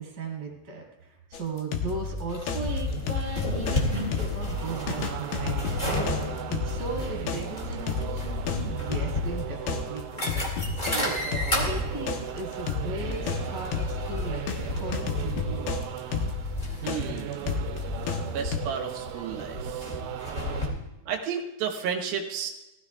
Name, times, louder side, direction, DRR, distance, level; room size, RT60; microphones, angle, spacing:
voice 1, 0.0-10.5 10.8-14.5 14.7-15.7, right 3 dB, 35° right, -2 dB, 3.6 m, -37 dB
sound 1, 1.3-3.8 4.1-14.6 14.9-18.6, left 5 dB, 75° left, 2.8 m, -32 dB
sound 2, 2.3-20.7, left 1 dB, 15° left, 1.6 m, -33 dB
sound 3, 3.7-20.7, right 11 dB, 85° right, 2.8 m, -38 dB
voice 2, 16.8-17.4 18.3-20.0 21.1-22.5, right 7 dB, 70° right, 3 dB, 2.8 m, -32 dB
19.0 x 15.0 x 2.3 m, 0.97 s
omnidirectional pair, 4.7 m